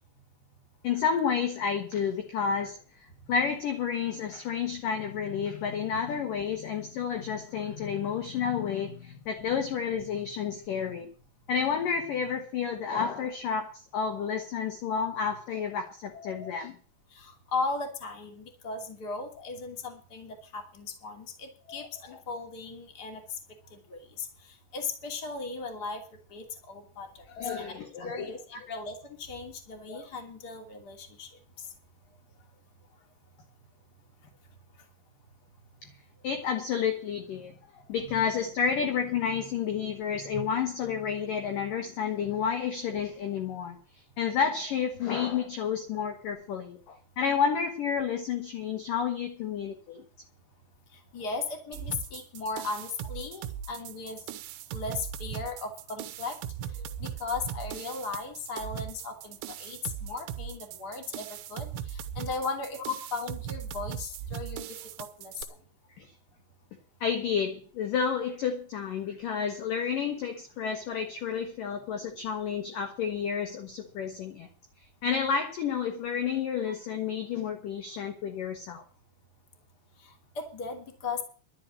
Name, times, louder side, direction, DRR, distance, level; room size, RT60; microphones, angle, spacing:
voice 1, 0.8-11.1 11.5-16.8 21.7-21.9 27.4-28.7 29.9-30.0 36.2-43.8 44.2-50.0 66.0-66.1 67.0-74.5 75.0-78.8, left 7 dB, 60° left, 4 dB, 2.5 m, -30 dB
voice 2, 17.1-23.4 23.7-26.0 26.3-31.3 38.0-38.2 40.3-40.4 51.1-54.2 54.7-56.4 56.7-62.8 63.1-65.5 80.0-81.2, left 4 dB, 25° left, 4 dB, 2.5 m, -37 dB
sound 1, 51.7-65.4, right 9 dB, 80° right, 3.0 m, -39 dB
12.0 x 7.4 x 9.7 m, 0.40 s
omnidirectional pair, 5.5 m